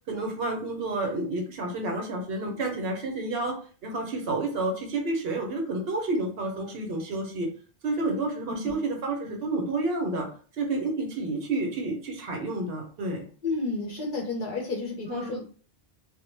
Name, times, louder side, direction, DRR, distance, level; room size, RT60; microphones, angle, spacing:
voice 1, 0.1-3.6 3.8-7.5 7.8-10.3 10.6-13.3 15.1-15.4, right 2 dB, 65° right, 2 dB, 0.8 m, -30 dB
voice 2, 13.4-15.4, left 3 dB, 60° left, 0 dB, 0.6 m, -31 dB
2.1 x 2.0 x 3.1 m, 0.41 s
omnidirectional pair, 1.1 m